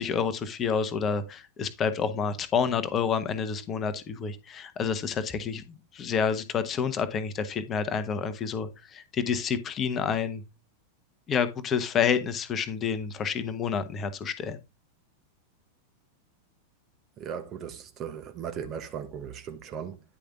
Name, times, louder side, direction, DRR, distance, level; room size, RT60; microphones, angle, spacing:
voice 1, 0.0-10.4 11.3-14.6, left 6 dB, 25° left, 0.9 m, -29 dB
voice 2, 17.2-20.0, right 8 dB, 35° right, 1.1 m, -37 dB
9.9 x 5.1 x 3.6 m
figure-of-eight pair, 90°, 0 cm